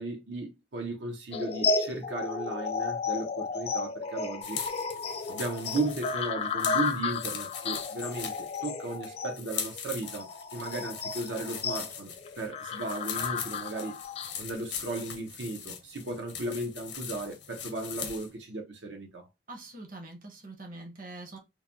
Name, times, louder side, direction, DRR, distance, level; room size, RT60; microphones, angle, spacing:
voice 1, 0.0-4.6 5.3-14.0 14.4-19.3, right 2 dB, 85° right, 0.7 m, -36 dB
sound 1, 1.3-14.4, left 4 dB, 35° left, 0.3 m, -33 dB
sound 2, 4.4-18.3, left 8 dB, 75° left, 0.7 m, -41 dB
voice 2, 19.5-21.4, right 2 dB, 50° right, 0.8 m, -44 dB
3.1 x 2.1 x 2.5 m
head